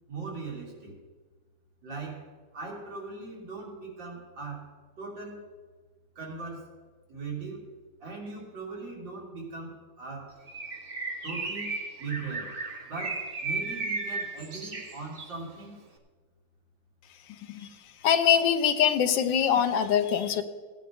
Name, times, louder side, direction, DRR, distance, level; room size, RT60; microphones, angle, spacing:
voice 1, 0.1-1.0 1.8-4.7 5.0-5.5 6.2-6.7 7.1-7.7 8.0-10.4 11.2-11.7 12.0-12.5 12.9-15.8, right 4 dB, 70° right, -3 dB, 3.2 m, -39 dB
Bird, 10.5-15.4, right 3 dB, 35° right, 1.1 m, -35 dB
voice 2, 17.3-17.7 18.0-20.4, left 8 dB, 75° left, 9 dB, 1.4 m, -23 dB
16.0 x 9.5 x 3.6 m, 1.4 s
omnidirectional pair, 2.1 m